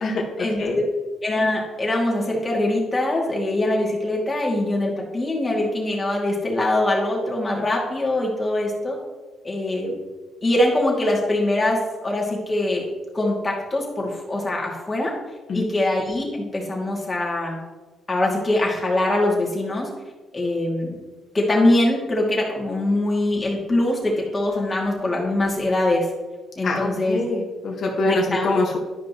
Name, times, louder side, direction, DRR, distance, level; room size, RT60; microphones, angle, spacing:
voice 1, 0.4-0.8 1.2-9.0 9.4-9.9 10.4-12.8 13.1-15.1 15.5-17.6 18.1-19.9 20.3-21.0 21.3-26.1 26.6-27.2 28.0-28.5, left 1 dB, 25° left, -3 dB, 2.3 m, -23 dB
voice 2, 26.6-28.8, left 2 dB, 55° left, -1 dB, 1.4 m, -24 dB
12.5 x 5.2 x 3.0 m, 1.3 s
cardioid pair, 90°, 0 cm